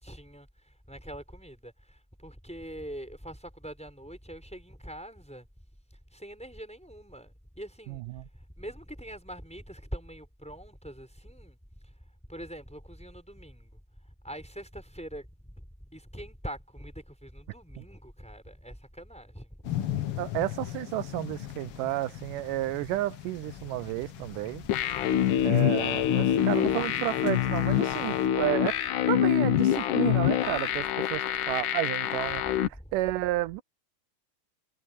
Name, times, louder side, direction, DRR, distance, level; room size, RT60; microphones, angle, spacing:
voice 1, 0.0-5.5 6.1-8.0 8.6-11.6 12.3-13.8 14.2-19.6 32.3-32.9, equal, ahead, 4.4 m, -43 dB
voice 2, 7.9-8.2 17.8-17.9 20.2-24.6 25.4-28.8 29.1-32.6 32.9-33.6, right 16 dB, 85° right, 2.2 m, -31 dB
sound 1, 19.6-28.3, left 12 dB, 55° left, 1.7 m, -39 dB
sound 2, 24.7-32.7, left 11 dB, 75° left, 2.7 m, -26 dB
omnidirectional pair, 3.7 m